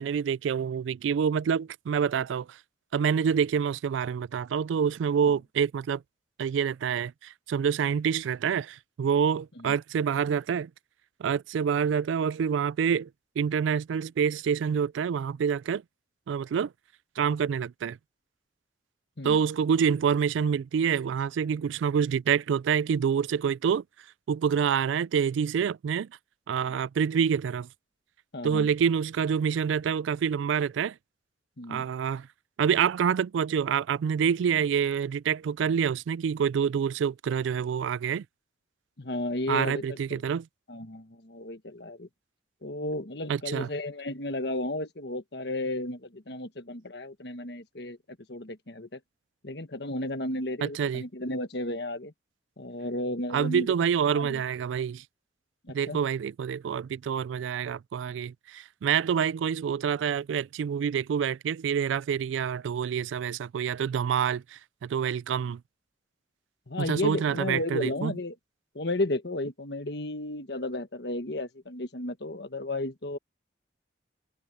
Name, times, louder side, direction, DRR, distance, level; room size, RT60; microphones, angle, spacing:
voice 1, 0.0-2.6 2.9-6.0 6.4-10.7 11.2-13.1 13.4-15.8 16.3-16.7 17.2-18.0 19.2-23.8 24.3-26.1 26.5-27.7 28.4-31.0 31.7-32.3 32.6-38.2 39.5-40.5 43.3-43.7 50.6-51.0 53.3-55.0 55.7-65.6 66.8-68.1, right 7 dB, 85° right, 0.3 m, -27 dB
voice 2, 28.3-28.7 31.6-31.9 39.0-40.2 40.7-42.1 42.6-48.0 48.3-49.0 49.4-52.1 52.6-53.7 54.1-54.4 55.6-56.0 66.7-68.3 68.7-73.2, left 1 dB, 60° left, 1.5 m, -33 dB
head